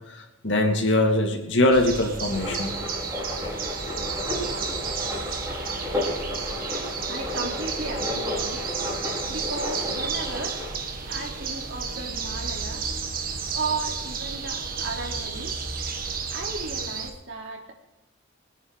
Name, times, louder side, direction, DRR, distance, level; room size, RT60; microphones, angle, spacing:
voice 1, 0.4-2.7, left 1 dB, 65° left, 3 dB, 2.6 m, -22 dB
sound 1, 1.7-17.1, right 5 dB, 45° right, 1.5 m, -32 dB
sound 2, 2.3-13.2 13.5-13.6 13.8-15.0, left 1 dB, 15° right, 5.5 m, -33 dB
voice 2, 7.1-8.7 9.3-10.6 11.0-12.9 13.5-15.6 16.3-17.7, right 3 dB, 65° right, 1 dB, 3.3 m, -35 dB
22.0 x 10.0 x 5.0 m, 0.95 s
head